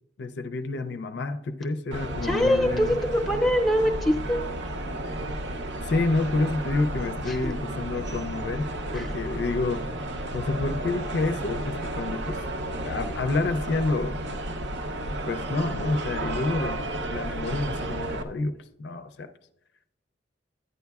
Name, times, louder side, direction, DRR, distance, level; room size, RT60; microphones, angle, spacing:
voice 1, 0.2-3.0 5.8-8.7 8.9-10.0 10.3-12.4 12.8-14.2 15.3-19.3, left 3 dB, 65° left, 8 dB, 0.4 m, -29 dB
sound 1, 1.9-18.2, right 1 dB, 70° right, 0.6 m, -32 dB
voice 2, 2.2-4.4 7.3-7.5 8.9-9.1, equal, ahead, 2 dB, 0.7 m, -24 dB
11.0 x 9.4 x 2.3 m, 0.79 s
head